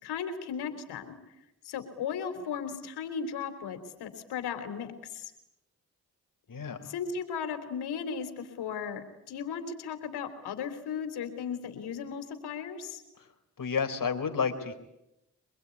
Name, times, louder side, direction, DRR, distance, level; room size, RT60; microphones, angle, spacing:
voice 1, 0.0-1.2 1.7-5.3 6.8-13.0, left 6 dB, 85° left, 8 dB, 3.6 m, -36 dB
voice 2, 6.5-6.9 13.2-13.3 13.6-14.7, left 6 dB, 55° left, 6 dB, 4.3 m, -31 dB
24.5 x 22.5 x 9.8 m, 0.89 s
supercardioid pair, 40°, 38 cm